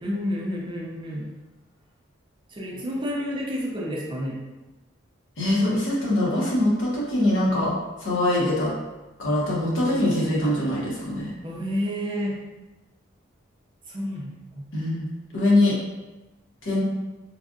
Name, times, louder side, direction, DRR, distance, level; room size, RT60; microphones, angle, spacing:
voice 1, 0.0-1.3 2.5-4.4 11.4-12.4 13.9-14.6, equal, 25° right, -2 dB, 0.4 m, -30 dB
voice 2, 5.4-7.7 8.0-8.7 9.2-11.3 14.7-15.1 15.3-15.7 16.6-16.8, left 1 dB, 75° left, -6 dB, 1.0 m, -23 dB
3.2 x 2.4 x 2.5 m, 1.1 s
head